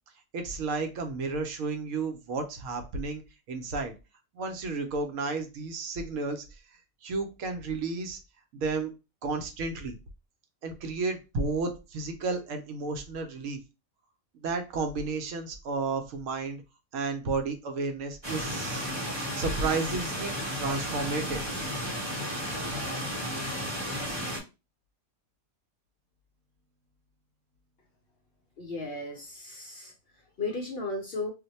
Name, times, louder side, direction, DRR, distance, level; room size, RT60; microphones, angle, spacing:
voice 1, 0.3-3.2 3.5-3.9 4.3-6.6 7.0-8.2 8.5-8.9 9.2-9.9 10.6-13.6 14.3-16.6 16.9-21.5, right 3 dB, 70° right, 5 dB, 1.0 m, -32 dB
sound 1, 18.2-24.4, equal, 20° right, 1.1 m, -33 dB
voice 2, 28.6-31.3, left 3 dB, 55° left, 1 dB, 0.7 m, -35 dB
2.5 x 2.1 x 3.9 m, 0.28 s
omnidirectional pair, 1.4 m